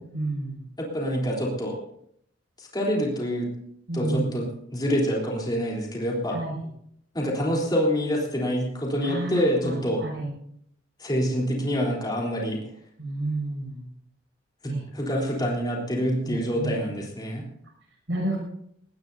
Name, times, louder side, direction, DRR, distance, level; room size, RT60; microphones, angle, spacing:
voice 1, 0.1-0.6 3.9-4.4 6.3-6.5 9.0-10.3 13.0-13.8 14.6-14.8 16.2-16.7 18.1-18.4, right 2 dB, 80° right, 0 dB, 6.7 m, -30 dB
voice 2, 0.8-1.8 2.6-3.5 3.9-4.5 4.7-6.4 7.1-10.0 11.0-12.6 14.6-17.4, equal, 20° left, -3 dB, 3.6 m, -26 dB
19.5 x 18.5 x 2.7 m, 0.71 s
head